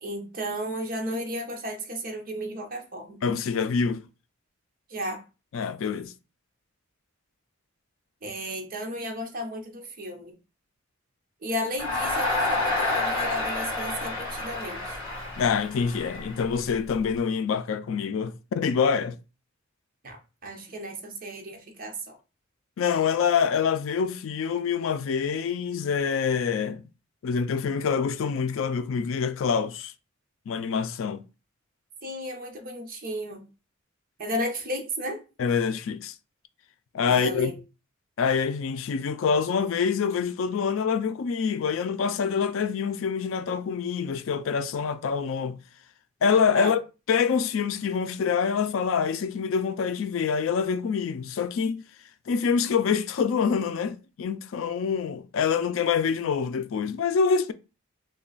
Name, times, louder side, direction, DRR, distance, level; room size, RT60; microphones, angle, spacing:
voice 1, 0.0-3.2 4.9-5.2 8.2-10.3 11.4-15.0 20.0-22.1 32.0-33.4 34.2-35.2 37.1-37.6 46.5-46.7, equal, 45° right, 0.8 m, -33 dB
voice 2, 3.2-4.0 5.5-6.1 15.4-19.2 22.8-26.8 27.2-29.9 30.5-31.2 35.4-36.1 36.9-37.5 38.2-45.6 46.2-46.8 47.1-51.9 52.3-57.5, left 6 dB, 75° left, 0.4 m, -26 dB
Crowd, 11.8-17.0, left 2 dB, 25° left, 1.7 m, -29 dB
3.2 x 2.2 x 3.9 m
head